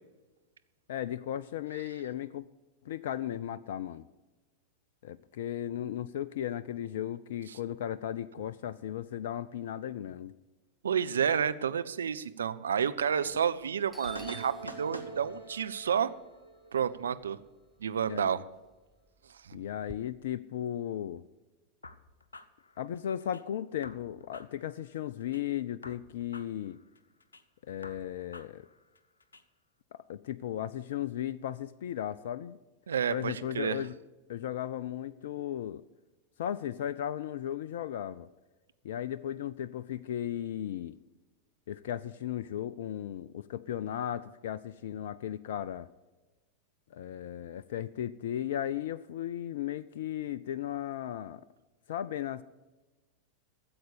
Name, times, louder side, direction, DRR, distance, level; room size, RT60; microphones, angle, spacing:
voice 1, 0.9-2.5 2.8-4.0 5.0-10.3 18.1-18.4 19.5-21.2 22.8-26.8 27.7-28.7 29.9-32.6 33.1-33.9 34.3-35.8 36.4-38.3 38.8-41.0 41.7-45.9 46.9-51.4 51.9-52.4, left 11 dB, 55° left, 16 dB, 0.4 m, -36 dB
voice 2, 10.8-16.1 16.7-17.4 17.8-18.4 19.4-19.6 32.9-33.8, right 7 dB, 70° right, 12 dB, 0.6 m, -30 dB
Doorbell, 13.6-13.7 13.9-18.1 18.4-20.0, equal, ahead, 0.7 m, -50 dB
sound 1, 14.0-17.7, right 3 dB, 90° right, 1.3 m, -45 dB
sound 2, 21.8-23.4 23.8-25.4 25.8-27.4 27.8-29.4, left 3 dB, 75° left, 0.8 m, -52 dB
13.5 x 7.8 x 6.8 m, 1.2 s
figure-of-eight pair, 90°, 0 cm